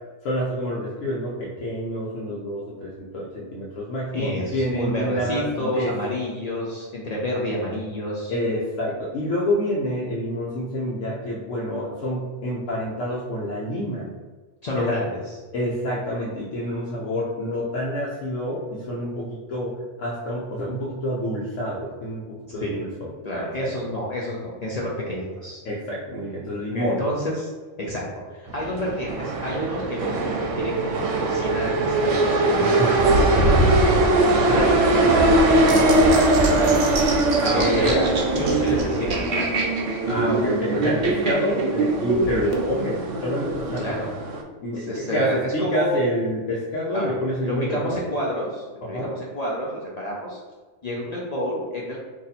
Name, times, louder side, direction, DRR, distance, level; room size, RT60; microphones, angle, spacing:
voice 1, 0.2-5.9 8.3-14.1 14.7-15.0 15.5-23.5 25.6-27.0 32.6-33.0 34.3-34.7 37.4-38.1 40.1-43.9 44.6-48.0 48.9-49.1, equal, 90° left, -6 dB, 1.0 m, -28 dB
voice 2, 4.1-8.3 14.6-15.4 22.6-22.8 23.2-25.6 26.7-27.5 27.8-30.2 30.5-36.7 37.5-38.1 38.3-39.6 43.8-44.1 44.7-46.1 46.9-47.2 47.4-50.4 50.8-52.0, equal, 50° left, -4 dB, 0.5 m, -29 dB
sound 1, 28.5-44.4, right 2 dB, 80° right, 0.9 m, -21 dB
sound 2, 35.7-42.6, right 3 dB, 55° right, 0.6 m, -26 dB
2.6 x 2.6 x 4.0 m, 1.4 s
omnidirectional pair, 1.3 m